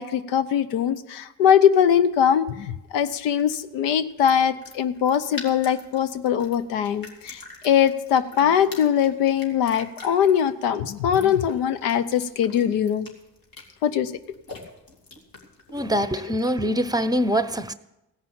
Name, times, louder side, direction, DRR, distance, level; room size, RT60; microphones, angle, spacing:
voice 1, 0.0-13.1 13.8-14.1, left 9 dB, 80° left, 0.8 m, -21 dB
water dribble, 2.0-16.7, left 2 dB, 55° left, 2.7 m, -46 dB
voice 2, 15.7-17.7, equal, 10° right, 0.8 m, -24 dB
16.0 x 5.6 x 8.7 m
hypercardioid pair, 50°, 41 cm